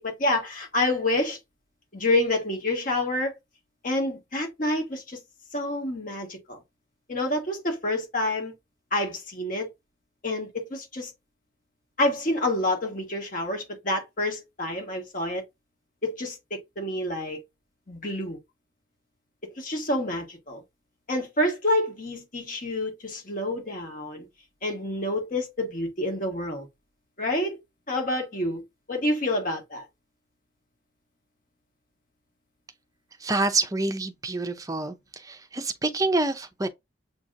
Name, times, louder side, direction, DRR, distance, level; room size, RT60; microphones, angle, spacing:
voice 1, 0.0-1.4 1.9-3.3 3.8-5.2 5.5-6.6 7.1-8.5 8.9-9.7 10.2-11.1 12.0-15.4 16.0-17.4 17.9-18.4 19.4-20.6 21.1-24.3 24.6-26.7 27.2-27.6 27.9-28.6 28.9-29.8, left 1 dB, 45° left, 1.4 m, -28 dB
voice 2, 33.2-36.7, right 2 dB, 20° right, 0.5 m, -27 dB
7.0 x 2.8 x 2.5 m
head